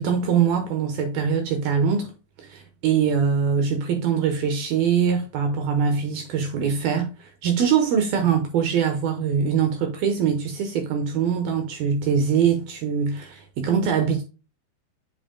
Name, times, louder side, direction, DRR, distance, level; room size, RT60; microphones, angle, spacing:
voice 1, 0.0-2.1 2.4-14.2, right 7 dB, 75° right, 2.3 m, -23 dB
7.8 x 7.5 x 2.2 m
omnidirectional pair, 5.5 m